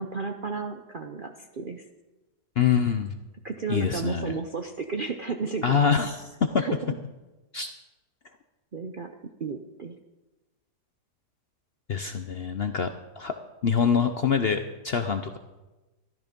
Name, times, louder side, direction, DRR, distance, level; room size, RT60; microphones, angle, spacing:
voice 1, 0.0-1.8 3.4-5.8 6.6-6.8 8.7-10.0, right 4 dB, 50° right, 5 dB, 0.6 m, -33 dB
voice 2, 2.6-3.1 3.7-4.4 5.6-6.3 6.5-6.6 7.5-7.7 11.9-12.9 13.2-13.3 13.6-15.4, left 6 dB, 55° left, 7 dB, 0.7 m, -25 dB
14.0 x 12.5 x 5.3 m, 1.1 s
omnidirectional pair, 1.8 m